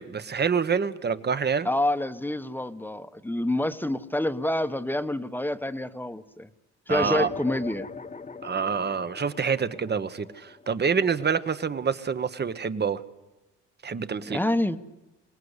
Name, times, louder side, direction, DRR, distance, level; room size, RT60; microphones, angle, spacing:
voice 1, 0.0-1.7 6.9-7.3 8.4-13.0 13.8-14.4, right 6 dB, 35° right, 13 dB, 1.3 m, -27 dB
voice 2, 1.6-6.5 6.9-7.9 14.3-14.8, left 1 dB, 5° left, 11 dB, 1.1 m, -27 dB
sound 1, 7.0-11.8, left 5 dB, 25° left, 1.3 m, -40 dB
23.5 x 19.5 x 8.2 m, 1.0 s
cardioid pair, 90°, 30 cm